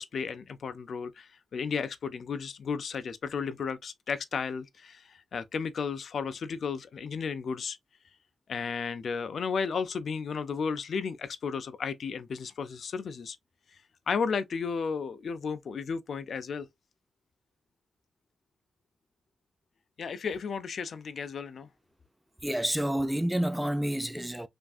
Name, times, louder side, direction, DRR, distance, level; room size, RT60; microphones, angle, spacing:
voice 1, 0.0-7.8 8.5-13.4 14.1-16.7 20.0-21.7, left 5 dB, 65° left, 0.4 m, -33 dB
voice 2, 22.4-24.5, right 1 dB, 5° right, 0.4 m, -29 dB
3.5 x 2.5 x 2.3 m
cardioid pair, 100°, 0 cm